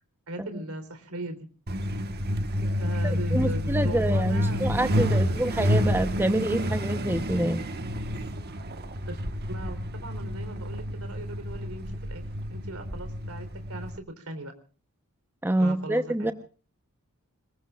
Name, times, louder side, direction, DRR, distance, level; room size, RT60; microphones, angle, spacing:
voice 1, 0.3-1.4 2.8-5.4 9.1-9.2 9.5-12.2 12.5-14.5 15.6-16.3, right 1 dB, 70° right, 8 dB, 3.9 m, -39 dB
Truck, 1.7-14.0, equal, 45° right, 1.4 m, -29 dB
voice 2, 3.0-7.6 15.4-16.3, right 1 dB, 10° right, 8 dB, 0.9 m, -27 dB
27.0 x 21.5 x 2.5 m, 0.38 s
head